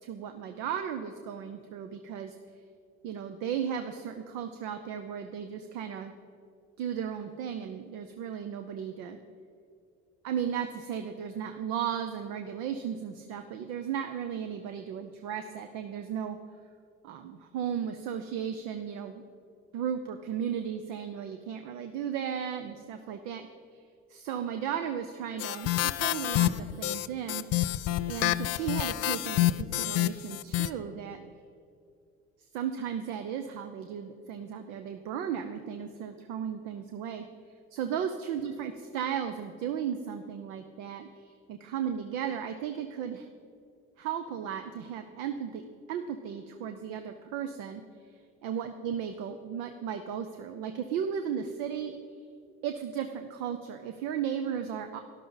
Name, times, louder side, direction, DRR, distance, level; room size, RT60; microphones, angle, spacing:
voice 1, 0.0-2.4 3.0-6.1 6.8-9.2 10.2-16.4 17.0-19.2 19.7-23.5 24.1-27.4 28.1-31.2 32.5-37.2 37.7-43.3 44.0-47.8 48.4-52.0 52.6-55.0, right 8 dB, 80° right, 7 dB, 0.7 m, -35 dB
sound 1, 25.4-30.7, left 15 dB, 55° left, 0.4 m, -28 dB
12.5 x 11.5 x 4.0 m, 2.4 s
supercardioid pair, 80°, 30 cm